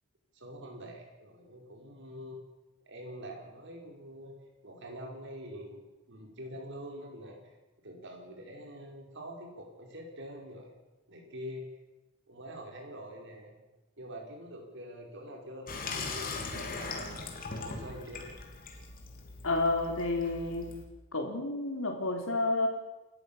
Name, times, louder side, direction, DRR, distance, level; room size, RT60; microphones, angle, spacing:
voice 1, 0.3-2.4 2.9-4.4 4.6-5.8 6.1-7.6 7.8-10.7 11.1-11.7 12.3-13.5 14.0-17.2 17.5-18.3, equal, 60° right, 1 dB, 5.5 m, -45 dB
Water tap faucet / Sink (filling or washing), 15.7-20.8, left 4 dB, 45° left, 3.4 m, -40 dB
voice 2, 19.4-20.7 21.1-22.7, left 2 dB, 80° left, 2 dB, 3.7 m, -30 dB
29.0 x 14.0 x 7.3 m, 1.1 s
head